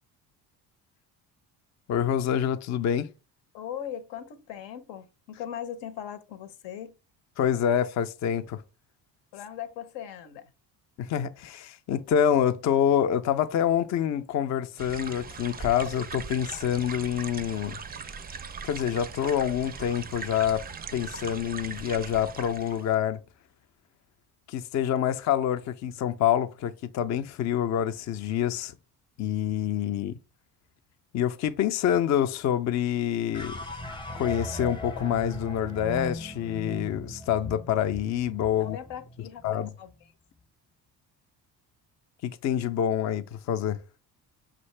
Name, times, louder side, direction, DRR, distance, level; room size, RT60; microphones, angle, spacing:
voice 1, 1.9-3.1 7.4-8.6 11.0-17.8 18.7-20.6 20.9-23.2 24.5-28.7 29.2-30.2 31.1-33.6 34.2-38.8 39.4-39.7 42.2-43.8, left 9 dB, 40° left, 0.4 m, -26 dB
voice 2, 3.5-6.9 9.3-10.5 38.6-40.1, left 9 dB, 75° left, 0.7 m, -39 dB
sound 1, 14.8-22.9, right 5 dB, 25° right, 0.4 m, -40 dB
sound 2, 33.3-39.7, left 1 dB, 10° left, 0.7 m, -38 dB
5.7 x 2.5 x 3.2 m
supercardioid pair, 70°, 43 cm